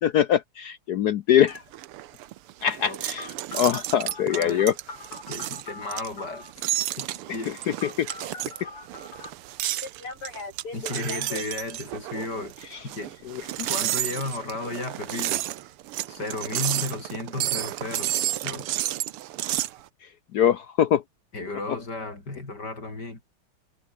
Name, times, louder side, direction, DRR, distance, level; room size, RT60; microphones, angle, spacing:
voice 1, 0.0-1.6 2.6-4.7 8.0-8.1 13.3-13.7 20.3-21.0, left 10 dB, 70° left, 0.9 m, -23 dB
sound 1, 1.5-19.8, right 14 dB, 85° right, 1.8 m, -31 dB
Telephone, 3.2-6.5 7.8-9.3 9.8-11.4, left 3 dB, 90° left, 7.6 m, -40 dB
voice 2, 4.3-4.7 5.3-6.5 7.0-7.5 10.7-12.5 12.8-13.1 13.7-15.4 16.1-18.1 18.4-18.7 21.3-23.2, left 2 dB, 45° left, 6.3 m, -34 dB
omnidirectional pair, 2.4 m